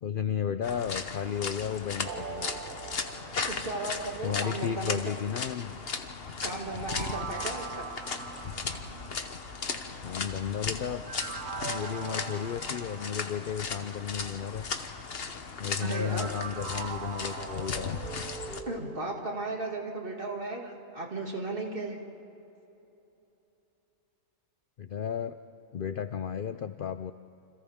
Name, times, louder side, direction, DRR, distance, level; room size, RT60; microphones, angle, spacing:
voice 1, 0.0-2.5 4.2-5.8 10.0-11.0 11.6-14.7 15.6-18.0 24.8-25.4 25.7-27.1, left 8 dB, 70° left, 10 dB, 0.5 m, -33 dB
sound 1, 0.6-18.6, left 5 dB, 45° left, 1.2 m, -37 dB
sound 2, 2.0-4.4 6.7-9.6 11.1-13.8 15.9-20.4 20.7-20.8, right 6 dB, 55° right, 0.5 m, -42 dB
voice 2, 3.5-5.1 6.4-7.9 15.8-16.3 18.6-22.0, right 2 dB, 40° right, 0 dB, 2.5 m, -35 dB
sound 3, 5.8-12.9, right 1 dB, 75° right, 3.5 m, -54 dB
28.5 x 26.0 x 3.6 m, 2.9 s
omnidirectional pair, 1.5 m